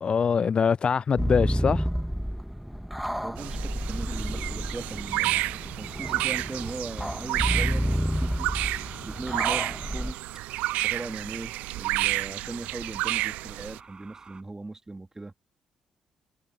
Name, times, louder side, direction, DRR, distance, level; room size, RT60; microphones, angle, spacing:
voice 1, 0.0-1.9, left 6 dB, 40° left, 0.4 m, -23 dB
sound 1, 1.2-10.1, equal, ahead, 1.8 m, -30 dB
voice 2, 3.2-5.4 5.7-8.5 9.0-10.2 10.8-15.3, right 2 dB, 20° right, 3.1 m, -39 dB
sound 2, 3.4-13.8, right 19 dB, 65° right, 0.6 m, -31 dB
sound 3, 3.8-14.4, right 5 dB, 35° right, 6.8 m, -50 dB
figure-of-eight pair, 40°, 3 cm